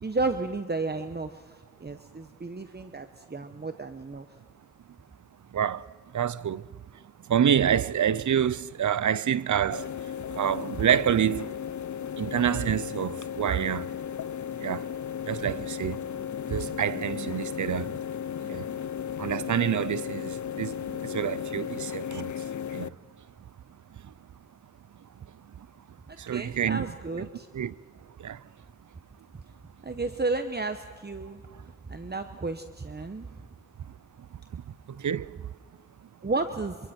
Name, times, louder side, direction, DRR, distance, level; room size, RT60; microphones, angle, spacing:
voice 1, 0.0-4.3 26.1-27.5 29.8-31.4 31.9-33.3 36.2-36.8, right 3 dB, 35° right, 1.0 m, -32 dB
voice 2, 5.5-5.8 6.1-6.6 7.3-9.9 10.4-11.5 12.2-13.9 14.6-14.9 15.3-16.0 16.5-17.9 18.5-18.7 19.2-22.3 22.7-22.9 26.2-26.9 27.5-27.7 28.2-28.4 34.5-34.6 35.0-35.3, right 9 dB, 85° right, 0.6 m, -27 dB
sound 1, 9.7-22.9, left 9 dB, 75° left, 0.6 m, -35 dB
27.5 x 26.0 x 4.4 m
cardioid pair, 50°, 29 cm